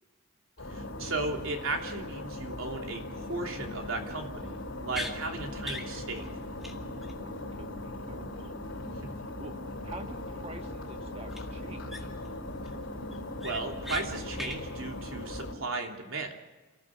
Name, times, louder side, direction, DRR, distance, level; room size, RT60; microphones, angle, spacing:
sound 1, 0.6-15.5, left 1 dB, 70° left, 5.1 m, -39 dB
voice 1, 0.7-6.3 13.4-16.4, right 3 dB, 80° right, 2 dB, 3.1 m, -35 dB
sound 2, 4.9-5.1 5.6-5.9 6.2-6.3 6.6-6.7 7.0-7.1 11.3-11.4 11.9-12.3 12.7-12.8 13.1-14.0 14.3-14.6, left 1 dB, ahead, 2.0 m, -38 dB
voice 2, 7.2-8.5 9.1-12.1, right 2 dB, 30° right, 5 dB, 1.7 m, -47 dB
29.0 x 15.0 x 6.5 m, 1.2 s
head